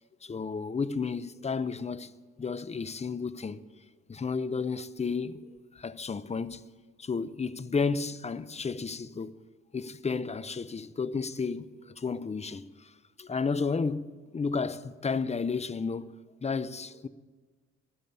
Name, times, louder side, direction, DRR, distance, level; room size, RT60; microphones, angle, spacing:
voice 1, 0.2-3.6 4.1-5.5 5.7-6.6 7.0-9.3 9.7-12.9 13.2-16.2 16.4-17.1, left 5 dB, 20° left, 0.6 m, -32 dB
12.0 x 11.0 x 8.7 m
cardioid pair, 90°, 30 cm